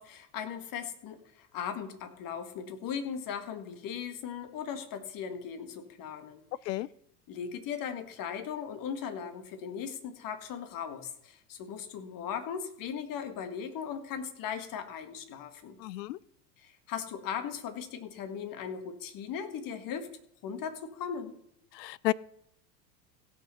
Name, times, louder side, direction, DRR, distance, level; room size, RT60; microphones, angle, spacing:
voice 1, 0.0-6.8 7.3-15.8 16.6-20.1 20.4-21.3, left 7 dB, 40° left, 9 dB, 1.9 m, -38 dB
voice 2, 15.8-16.2 21.7-22.1, left 17 dB, 75° left, 22 dB, 0.6 m, -31 dB
16.0 x 6.4 x 5.6 m, 0.73 s
hypercardioid pair, 105°, 49 cm